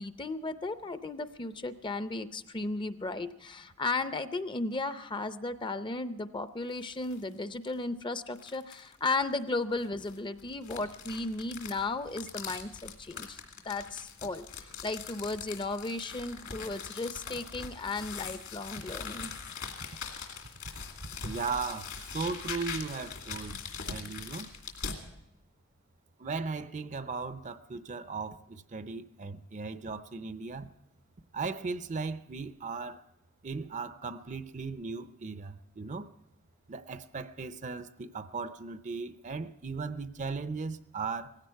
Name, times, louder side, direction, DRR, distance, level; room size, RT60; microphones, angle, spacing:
voice 1, 0.0-13.4 13.6-19.3, left 3 dB, 25° left, 0.6 m, -35 dB
sound 1, 6.7-7.2 7.7-7.8 8.3-8.9 9.8-25.0, left 6 dB, 70° left, 2.5 m, -42 dB
voice 2, 21.2-23.6 23.9-24.5 26.2-30.7 31.3-33.0 33.4-36.1 36.7-41.4, right 4 dB, 35° right, 0.5 m, -37 dB
18.0 x 16.0 x 4.5 m
head